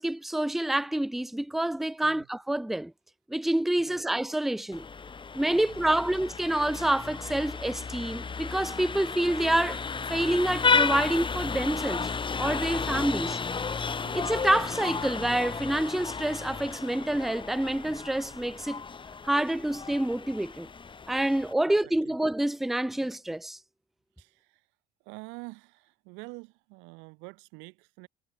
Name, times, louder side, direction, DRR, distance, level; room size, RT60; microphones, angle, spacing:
voice 1, 0.0-2.9 3.3-4.9 5.3-9.8 10.1-12.1 12.4-13.4 14.1-18.8 19.2-20.7 21.1-23.6, right 1 dB, ahead, 0.5 m, -27 dB
Vehicle horn car horn honking, 4.7-21.5, left 5 dB, 25° left, 1.1 m, -33 dB
voice 2, 5.5-6.2 12.7-13.3 14.0-14.3 21.7-22.2 24.2-24.7 25.0-28.1, right 30 dB, 85° right, 5.2 m, -47 dB
supercardioid pair, 80°, 19 cm